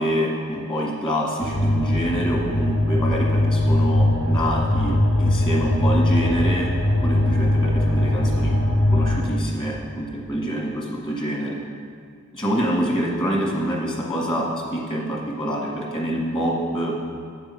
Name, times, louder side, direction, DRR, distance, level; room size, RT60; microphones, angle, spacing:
voice 1, 0.0-6.7 7.0-8.5 8.9-11.6 12.3-16.9, equal, 25° left, -2 dB, 1.7 m, -26 dB
sound 1, 1.4-9.2, left 1 dB, 70° left, 1.1 m, -21 dB
8.3 x 6.0 x 7.0 m, 2.2 s
head